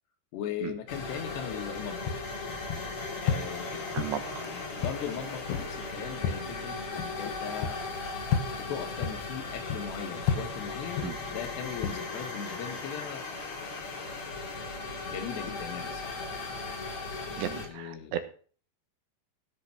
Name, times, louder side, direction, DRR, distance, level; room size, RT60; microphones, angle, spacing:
voice 1, 0.3-2.2 3.2-4.1 4.5-7.8 8.6-13.3 13.6-14.3 15.1-16.3 17.5-18.2, left 8 dB, 80° left, 5 dB, 3.6 m, -39 dB
sound 1, 0.9-17.7, left 3 dB, 40° left, 4.3 m, -37 dB
sound 2, 2.0-12.0, left 7 dB, 65° left, 2.9 m, -35 dB
voice 2, 3.9-4.5 11.0-11.2 17.4-18.2, right 11 dB, 85° right, 8 dB, 3.5 m, -35 dB
16.0 x 5.5 x 6.0 m, 0.43 s
omnidirectional pair, 5.0 m